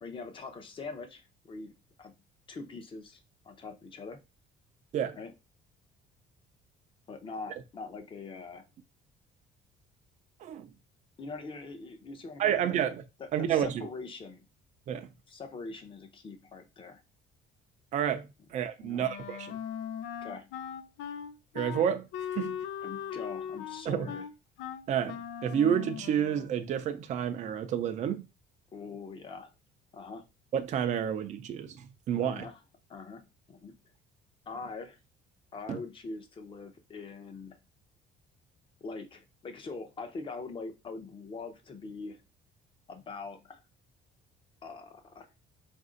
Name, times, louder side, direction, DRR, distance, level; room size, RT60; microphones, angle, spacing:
voice 1, 0.0-1.7 2.0-2.1 2.5-4.2 5.2-5.3 7.1-8.6 11.2-12.8 13.2-14.5 15.3-17.0 18.8-19.0 20.2-20.5 22.8-24.3 28.7-29.5 29.9-30.2 32.2-32.6 32.9-33.7 34.5-35.0 35.5-37.6 38.8-42.2 42.9-43.6 44.6-45.3, left 4 dB, 30° left, 0.7 m, -43 dB
voice 2, 12.4-13.0 13.3-13.9 14.9-15.1 17.9-19.6 21.5-22.0 22.3-22.6 23.9-24.1 24.9-28.3 30.5-32.5 35.7-35.8, right 9 dB, 40° right, 0.5 m, -30 dB
Wind instrument woodwind instrument, 19.0-26.6, left 8 dB, 85° left, 0.5 m, -39 dB
4.1 x 2.6 x 3.8 m
cardioid pair, 150°, 18 cm